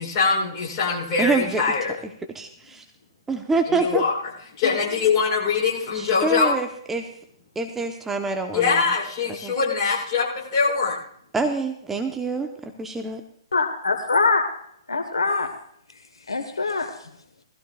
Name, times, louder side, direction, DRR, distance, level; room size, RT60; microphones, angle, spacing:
voice 1, 0.0-1.9 3.7-4.1 4.6-6.6 8.5-11.0, left 5 dB, 35° left, -4 dB, 6.6 m, -23 dB
voice 2, 1.2-1.6 2.3-2.8 3.3-4.0 6.0-7.1 7.6-8.8 9.3-9.5 11.3-13.2, right 3 dB, 10° right, 5 dB, 0.9 m, -26 dB
voice 3, 13.5-14.4 14.9-15.5 16.3-16.9, left 4 dB, 80° left, 6 dB, 1.4 m, -23 dB
19.5 x 15.0 x 2.4 m, 0.65 s
figure-of-eight pair, 120°, 3 cm